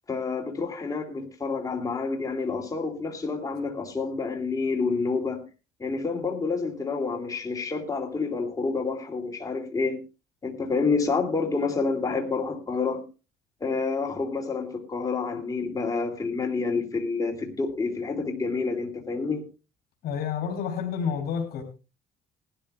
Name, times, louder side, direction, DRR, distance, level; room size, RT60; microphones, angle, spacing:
voice 1, 0.1-5.4 5.8-10.0 10.4-13.0 13.6-19.5, left 4 dB, 20° left, 2.5 m, -28 dB
voice 2, 20.0-21.6, left 7 dB, 65° left, 3.1 m, -29 dB
20.0 x 12.5 x 2.3 m
cardioid pair, 110°, 17 cm